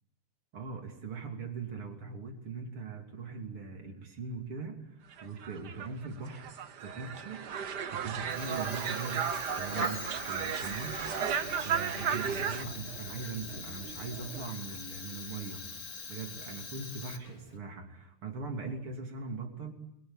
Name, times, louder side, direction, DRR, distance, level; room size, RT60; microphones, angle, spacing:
voice 1, 0.5-11.1 11.6-15.6 16.1-19.7, right 4 dB, 85° right, 3 dB, 3.9 m, -41 dB
sound 1, 5.2-12.6, right 7 dB, 55° right, 1.7 m, -34 dB
sound 2, 8.0-14.5, right 4 dB, 35° right, 1.7 m, -48 dB
Fire, 8.2-17.6, left 4 dB, 45° left, 2.4 m, -43 dB
28.5 x 22.5 x 9.0 m, 0.79 s
omnidirectional pair, 2.4 m